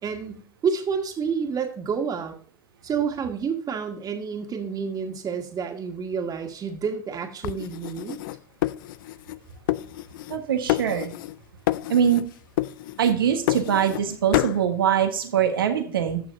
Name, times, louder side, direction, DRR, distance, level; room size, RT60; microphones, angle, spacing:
voice 1, 0.0-2.3 2.8-8.2, right 6 dB, 35° right, 4 dB, 1.9 m, -29 dB
sound 1, 7.4-9.4 9.7-10.4 10.7-11.4 11.7-12.3 12.6-14.0 14.3-14.6, left 16 dB, 70° left, 0.4 m, -28 dB
voice 2, 10.3-11.1 11.9-12.2 13.0-16.2, right 8 dB, 80° right, 7 dB, 1.3 m, -23 dB
17.0 x 6.3 x 2.6 m, 0.44 s
hypercardioid pair, 80°, 12 cm